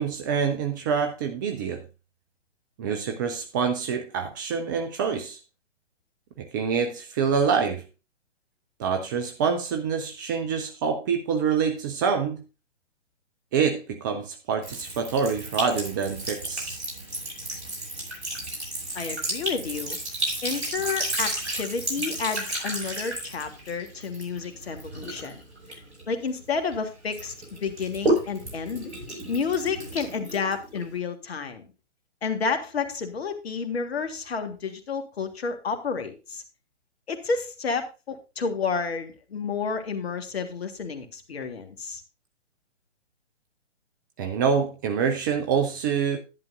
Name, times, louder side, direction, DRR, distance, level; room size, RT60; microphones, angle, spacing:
voice 1, 0.0-1.8 2.8-5.4 6.4-7.8 8.8-12.4 13.5-16.8 44.2-46.2, right 6 dB, 15° right, 0.5 m, -26 dB
Sink (filling or washing) / Trickle dribble, 14.6-26.7 27.1-31.0, right 1 dB, 65° right, 6.2 m, -32 dB
voice 2, 18.9-20.0 20.4-25.4 25.7-28.9 29.3-31.7 32.2-36.4 37.1-42.0, left 5 dB, 55° left, 1.7 m, -30 dB
11.0 x 10.5 x 2.6 m
figure-of-eight pair, 125°, 36 cm